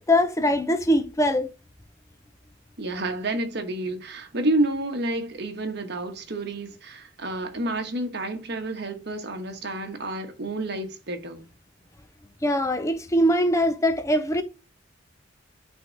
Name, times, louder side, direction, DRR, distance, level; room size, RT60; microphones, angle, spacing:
voice 1, 0.1-1.5 12.4-14.4, equal, 15° left, 0.6 m, -22 dB
voice 2, 2.8-11.4, right 2 dB, 55° right, 1.2 m, -29 dB
8.5 x 3.7 x 3.9 m
head